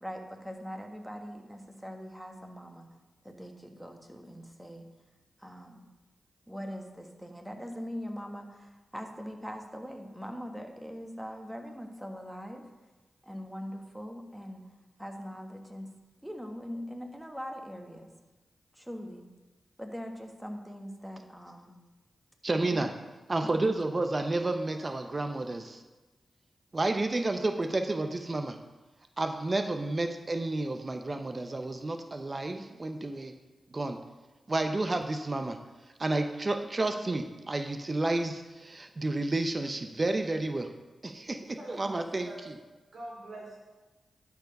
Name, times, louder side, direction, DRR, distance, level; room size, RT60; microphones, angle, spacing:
voice 1, 0.0-2.9 3.2-4.9 5.4-5.9 6.5-12.7 13.2-14.6 15.0-15.9 16.2-18.1 18.7-19.3 19.8-21.7 22.6-22.9 23.4-23.5, equal, 5° right, 3 dB, 1.5 m, -42 dB
voice 2, 22.4-22.9 23.3-25.8 26.7-28.6 29.2-33.3 33.7-34.0 34.5-35.6 36.0-40.7 41.0-42.3, right 2 dB, 40° right, 6 dB, 0.7 m, -31 dB
voice 3, 41.4-42.4 42.9-43.6, right 1 dB, 70° right, -3 dB, 2.6 m, -46 dB
11.5 x 4.8 x 5.3 m, 1.2 s
supercardioid pair, 40°, 0 cm